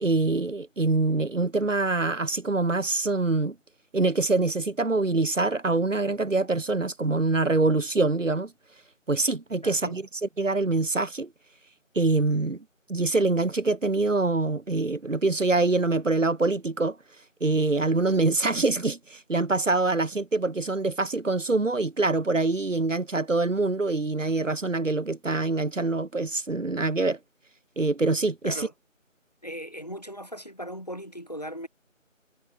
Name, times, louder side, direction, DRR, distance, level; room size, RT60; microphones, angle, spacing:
voice 1, 0.0-3.5 3.9-8.5 9.1-11.3 12.0-12.6 12.9-17.0 17.4-27.2 27.8-28.7, right 3 dB, 70° right, 1.1 m, -25 dB
voice 2, 9.6-10.0 28.4-28.7 29.4-31.7, equal, 30° left, 4.0 m, -38 dB
figure-of-eight pair, 180°, 40 cm